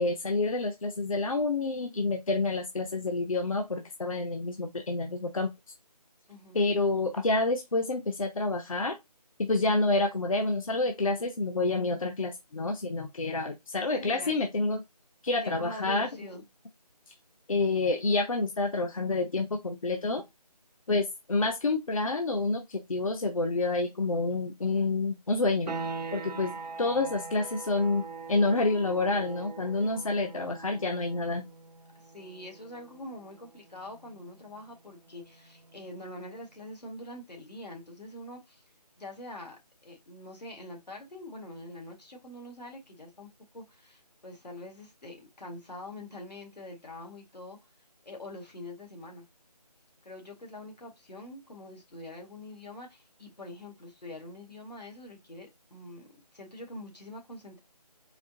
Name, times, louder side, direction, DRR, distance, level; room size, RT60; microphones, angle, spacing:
voice 1, 0.0-5.5 6.5-9.0 9.4-14.8 15.2-16.1 17.5-20.2 20.9-25.7 26.1-31.5, left 3 dB, 55° left, 0.6 m, -28 dB
voice 2, 6.3-6.6 14.0-14.5 15.4-16.4 32.0-38.6 39.0-47.6 48.0-49.2 50.0-57.6, left 1 dB, 80° left, 1.8 m, -44 dB
sound 1, 25.7-36.2, right 4 dB, 80° right, 0.7 m, -43 dB
4.2 x 2.7 x 2.7 m
figure-of-eight pair, 165°, 21 cm